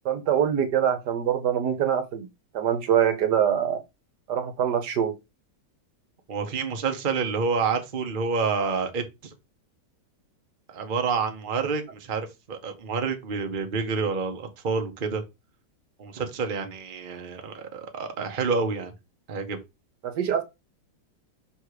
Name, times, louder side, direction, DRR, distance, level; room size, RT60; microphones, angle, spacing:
voice 1, 0.0-2.3 2.5-3.8 4.3-5.1 20.0-20.4, right 9 dB, 70° right, 1.5 m, -24 dB
voice 2, 6.3-9.3 10.7-15.2 16.0-18.9 19.3-19.6, right 5 dB, 35° right, 1.0 m, -28 dB
6.3 x 3.4 x 4.8 m
omnidirectional pair, 1.9 m